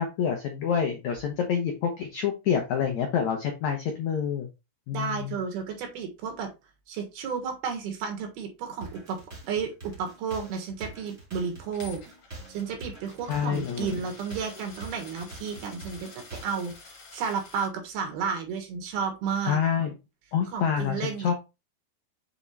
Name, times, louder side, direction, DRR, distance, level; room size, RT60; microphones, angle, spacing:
voice 1, 0.0-4.5 4.9-5.4 13.3-14.0 19.5-19.9 20.3-21.3, left 7 dB, 80° left, 3 dB, 1.6 m, -27 dB
voice 2, 4.9-6.5 6.9-9.2 9.5-12.0 12.5-16.7 17.1-19.6 20.5-21.3, right 6 dB, 75° right, 4 dB, 3.4 m, -32 dB
sound 1, 8.8-16.8, right 2 dB, 25° right, 1.5 m, -44 dB
Coin (dropping), 11.7-17.7, left 4 dB, 50° left, 2.8 m, -49 dB
7.1 x 4.8 x 3.3 m, 0.26 s
omnidirectional pair, 4.7 m